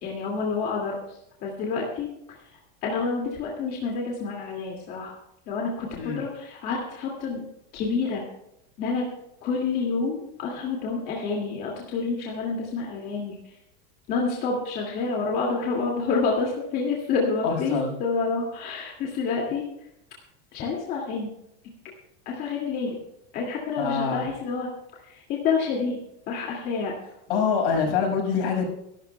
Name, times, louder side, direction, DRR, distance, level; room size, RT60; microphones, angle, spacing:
voice 1, 0.0-2.1 2.8-5.1 5.5-5.9 6.2-7.4 7.7-8.2 8.8-9.1 9.4-13.4 14.1-19.6 20.5-21.3 22.3-23.0 23.3-24.7 25.0-26.0 26.3-26.9, left 4 dB, 35° left, -1 dB, 2.3 m, -28 dB
voice 2, 17.4-17.9 23.8-24.2 27.3-28.7, left 5 dB, 70° left, 2 dB, 6.1 m, -25 dB
24.5 x 12.5 x 2.3 m, 0.80 s
supercardioid pair, 175°, 30 cm